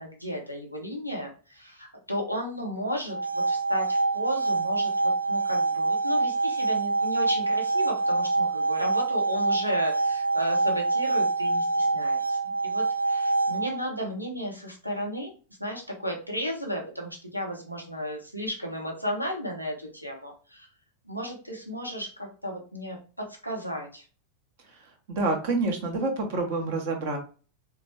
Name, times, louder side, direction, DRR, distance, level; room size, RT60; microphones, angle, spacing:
voice 1, 0.0-15.3 15.6-20.7 21.0-24.1, equal, 90° right, 0 dB, 0.9 m, -34 dB
sound 1, 3.0-14.0, right 3 dB, 85° left, 0.4 m, -26 dB
voice 2, 25.1-27.2, right 3 dB, 50° right, 4 dB, 1.0 m, -27 dB
4.0 x 2.3 x 3.4 m, 0.37 s
figure-of-eight pair, 90°, 0 cm